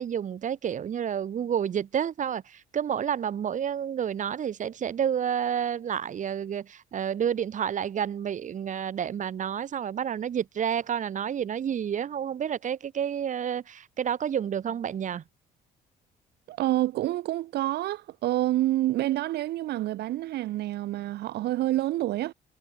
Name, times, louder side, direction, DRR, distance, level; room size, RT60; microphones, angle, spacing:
voice 1, 0.0-15.2, right 8 dB, 45° right, 4.9 m, -30 dB
voice 2, 16.5-22.3, right 15 dB, 75° right, 7.2 m, -28 dB
cardioid pair, 110°, 17 cm